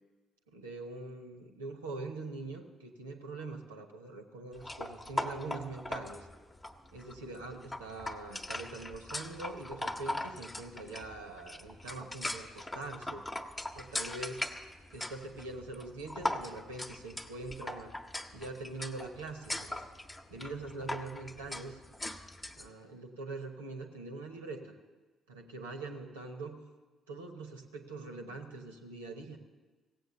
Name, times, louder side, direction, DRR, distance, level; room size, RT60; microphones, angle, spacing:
voice 1, 0.5-6.3 6.9-13.2 13.7-14.4 14.9-17.9 18.3-19.8 20.3-21.8 22.6-24.7 25.3-26.6 27.1-29.4, right 3 dB, 80° right, 4 dB, 1.0 m, -43 dB
sound 1, 4.6-22.7, left 1 dB, 20° left, 0.9 m, -40 dB
16.5 x 7.9 x 6.8 m, 1.3 s
figure-of-eight pair, 45°, 0 cm